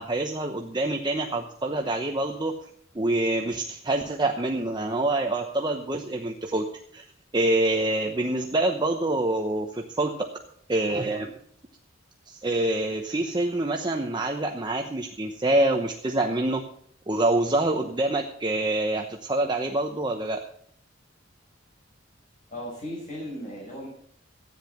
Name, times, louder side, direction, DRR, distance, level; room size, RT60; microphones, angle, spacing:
voice 1, 0.0-2.5 2.9-6.7 6.9-7.0 7.3-10.3 10.7-11.3 12.3-16.6 17.1-20.4, right 2 dB, 25° right, 3 dB, 0.9 m, -26 dB
voice 2, 22.5-23.9, equal, 40° left, -6 dB, 5.9 m, -36 dB
13.5 x 9.9 x 5.9 m, 0.64 s
head